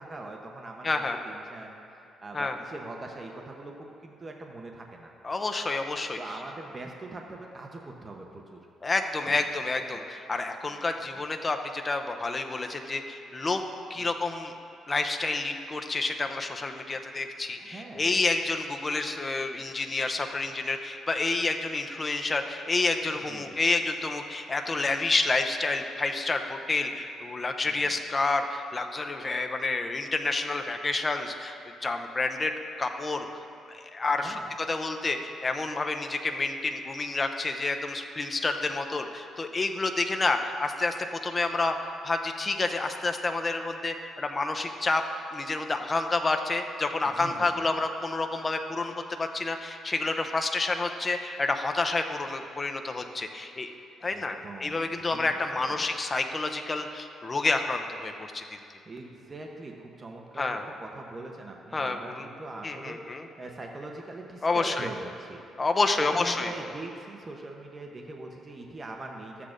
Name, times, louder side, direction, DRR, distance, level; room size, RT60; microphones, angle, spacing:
voice 1, 0.0-0.9 1.2-5.1 6.2-8.7 9.3-9.4 9.9-10.0 10.6-10.8 14.0-14.1 17.6-18.2 23.2-23.6 27.6-27.9 34.2-34.5 47.0-47.7 54.0-55.9 58.9-65.4 66.0-69.4, right 2 dB, 30° right, 1 dB, 0.8 m, -42 dB
voice 2, 0.8-1.2 2.3-2.6 5.2-6.2 8.8-13.6 13.9-14.5 14.9-33.3 33.7-34.4 34.7-40.9 41.2-41.8 42.0-45.0 45.3-53.7 54.0-58.4 60.4-60.6 61.7-62.3 62.6-63.2 64.4-64.9 65.6-66.5, left 3 dB, 30° left, 5 dB, 0.6 m, -29 dB
13.0 x 8.3 x 2.5 m, 2.6 s
cardioid pair, 90°, 0 cm